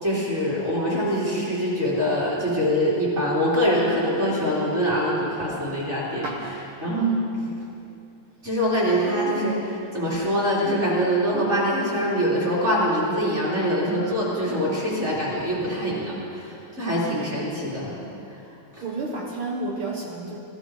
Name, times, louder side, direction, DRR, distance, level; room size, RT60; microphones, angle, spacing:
voice 1, 0.0-6.3 6.8-7.1 8.4-18.0 18.7-18.8, equal, 25° right, -7 dB, 3.1 m, -24 dB
voice 2, 6.2-6.5 6.9-7.4 18.8-20.4, right 3 dB, 70° right, 0 dB, 1.3 m, -29 dB
15.0 x 12.0 x 4.7 m, 2.7 s
omnidirectional pair, 3.3 m